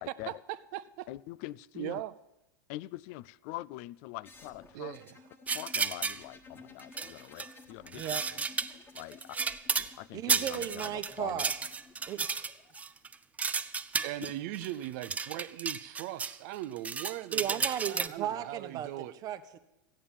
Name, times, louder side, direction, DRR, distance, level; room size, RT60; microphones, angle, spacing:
voice 1, 0.0-0.4 1.1-2.0 2.7-5.0 5.5-8.2 8.9-9.4 10.0-11.5, left 17 dB, 55° left, 0.4 m, -43 dB
voice 2, 0.7-1.1 1.7-2.1 4.7-5.1 14.0-19.1, right 14 dB, 60° right, 0.6 m, -39 dB
sound 1, 4.2-12.8 13.9-14.5, left 3 dB, 20° left, 1.3 m, -56 dB
sound 2, 5.5-6.2 6.8-7.5 7.9-9.9 10.3-16.3 16.6-18.1, right 5 dB, 15° right, 0.4 m, -33 dB
voice 3, 10.1-11.5 12.1-12.5 17.3-19.6, right 11 dB, 35° right, 1.0 m, -36 dB
13.5 x 8.8 x 7.1 m
hypercardioid pair, 110°, 11 cm